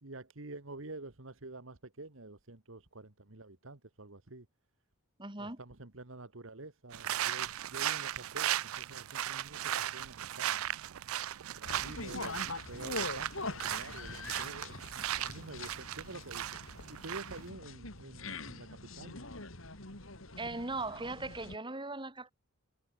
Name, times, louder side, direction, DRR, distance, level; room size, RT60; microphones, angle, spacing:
voice 1, 0.0-4.5 5.4-10.6 11.6-14.8 15.2-19.2, right 2 dB, 65° right, 1.8 m, -48 dB
voice 2, 5.2-5.6 20.4-22.3, right 2 dB, 25° right, 4.5 m, -39 dB
sound 1, 6.9-17.5, right 12 dB, 85° right, 0.5 m, -37 dB
sound 2, 11.6-21.6, left 3 dB, 75° left, 4.9 m, -44 dB
head